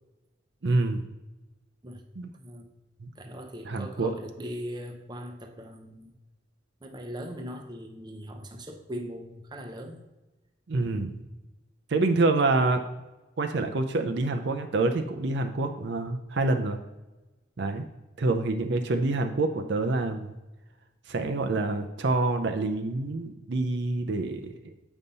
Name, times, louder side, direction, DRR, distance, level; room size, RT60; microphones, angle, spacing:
voice 1, 0.6-1.0 2.2-2.3 3.0-3.1 3.6-4.1 10.7-11.2 11.9-12.8 13.4-16.8 17.6-17.9 18.2-20.4 21.1-24.5, right 2 dB, 55° right, 5 dB, 0.5 m, -27 dB
voice 2, 2.4-2.8 3.2-6.1 6.8-10.0, equal, 20° right, 4 dB, 0.7 m, -40 dB
8.0 x 5.4 x 4.0 m, 1.1 s
head